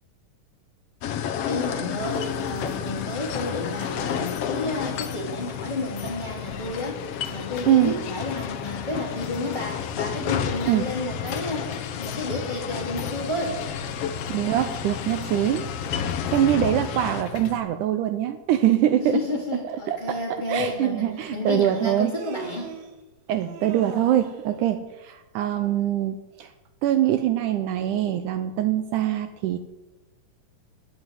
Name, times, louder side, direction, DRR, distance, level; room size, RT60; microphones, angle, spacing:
sound 1, 1.0-17.2, left 8 dB, 70° left, 1.5 m, -32 dB
voice 1, 1.4-13.6 19.0-22.7, left 2 dB, 15° left, -2 dB, 2.7 m, -31 dB
sound 2, 2.0-17.6, left 7 dB, 85° left, 2.6 m, -39 dB
voice 2, 7.7-8.0 10.7-10.9 14.3-19.2 19.6-22.1 23.3-26.5 26.8-29.6, right 12 dB, 80° right, 10 dB, 2.0 m, -24 dB
Human voice, 20.4-20.5 21.7-22.9 23.4-24.4, right 6 dB, 60° right, 2.0 m, -39 dB
10.5 x 9.2 x 9.4 m, 1.1 s
omnidirectional pair, 3.9 m